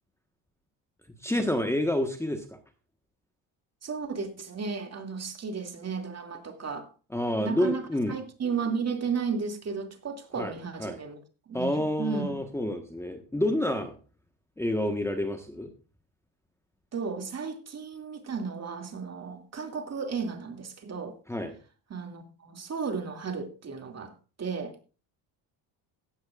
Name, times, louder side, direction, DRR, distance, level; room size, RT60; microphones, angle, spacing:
voice 1, 1.2-2.4 7.1-8.1 10.4-10.5 10.8-11.0 11.5-13.9 14.6-15.7 21.3-21.5, left 1 dB, 5° left, 1.4 m, -28 dB
voice 2, 3.8-6.9 7.4-11.2 11.5-12.4 16.9-21.2 21.9-24.8, right 5 dB, 35° right, 2.5 m, -34 dB
16.5 x 12.5 x 2.5 m
cardioid pair, 110°, 45 cm